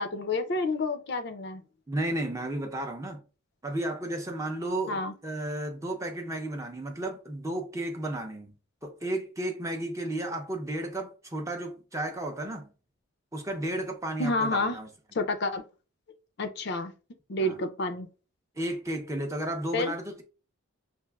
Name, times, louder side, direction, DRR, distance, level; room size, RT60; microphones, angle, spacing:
voice 1, 0.0-1.6 4.9-5.1 14.2-14.8 15.1-15.6 16.4-16.9 17.3-18.1 19.7-19.9, left 2 dB, 50° left, 0.4 m, -29 dB
voice 2, 1.9-3.2 3.6-8.5 8.8-12.7 13.3-14.9 17.4-17.6 18.6-20.2, right 1 dB, 15° right, 0.5 m, -33 dB
5.8 x 2.5 x 2.3 m
head